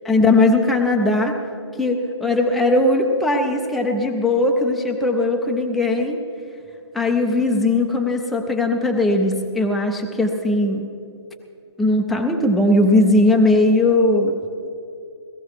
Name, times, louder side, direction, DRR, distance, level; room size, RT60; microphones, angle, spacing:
voice 1, 0.1-1.4 1.8-6.2 6.9-10.8 11.8-14.3, left 2 dB, ahead, 1 dB, 0.4 m, -18 dB
17.5 x 14.5 x 4.7 m, 2.6 s
hypercardioid pair, 160°, 15 cm